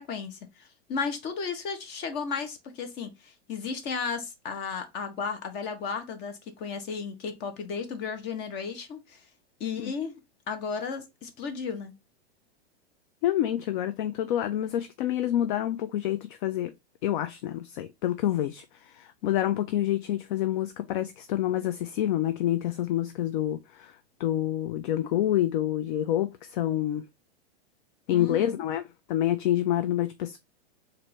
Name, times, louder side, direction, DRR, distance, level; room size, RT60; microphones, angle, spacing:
voice 1, 0.0-9.2 9.6-10.2 10.5-11.9 28.1-28.6, left 5 dB, 30° left, 0.9 m, -34 dB
voice 2, 13.2-16.7 17.0-23.9 24.2-27.0 28.1-28.8 29.1-30.4, left 12 dB, 50° left, 0.4 m, -27 dB
4.3 x 2.6 x 3.1 m
hypercardioid pair, 135°, 32 cm